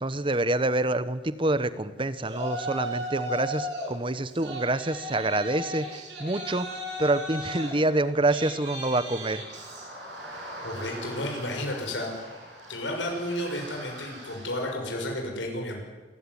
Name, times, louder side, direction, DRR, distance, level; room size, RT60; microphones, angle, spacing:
voice 1, 0.0-9.4, right 2 dB, 30° right, 14 dB, 1.0 m, -27 dB
Yell, 2.2-3.9 4.2-14.7, equal, 70° right, 6.4 m, -38 dB
voice 2, 10.6-12.1 12.7-15.8, left 1 dB, 85° left, 1 dB, 6.5 m, -32 dB
28.0 x 15.5 x 9.9 m, 1.3 s
head